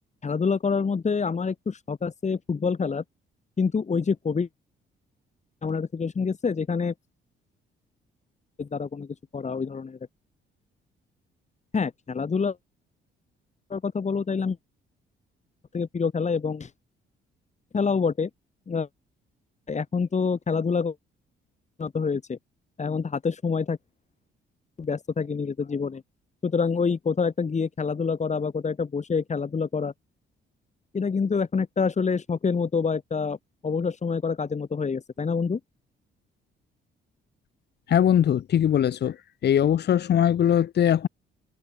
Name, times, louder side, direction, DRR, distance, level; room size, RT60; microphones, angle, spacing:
voice 1, 0.2-3.0 3.6-4.5 5.6-6.9 8.6-10.0 11.7-12.6 13.7-14.6 15.7-16.7 17.7-18.3 18.7-18.9 19.7-20.9 21.8-22.4 22.8-23.8 24.8-26.0 26.4-29.9 30.9-33.4 33.6-35.6, left 5 dB, 35° left, 6.4 m, -26 dB
voice 2, 37.9-39.1 39.4-41.1, left 10 dB, 55° left, 1.2 m, -21 dB
cardioid pair, 90°, 20 cm